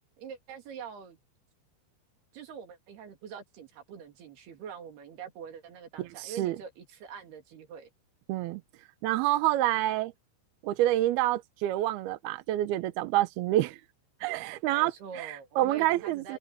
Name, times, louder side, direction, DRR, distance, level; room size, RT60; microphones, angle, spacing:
voice 1, 0.2-1.2 2.3-7.9 14.7-16.4, right 7 dB, 60° right, 4.6 m, -44 dB
voice 2, 6.0-6.6 8.3-8.6 9.0-10.1 10.6-13.8 14.2-16.4, right 15 dB, 75° right, 2.3 m, -28 dB
omnidirectional pair, 5.5 m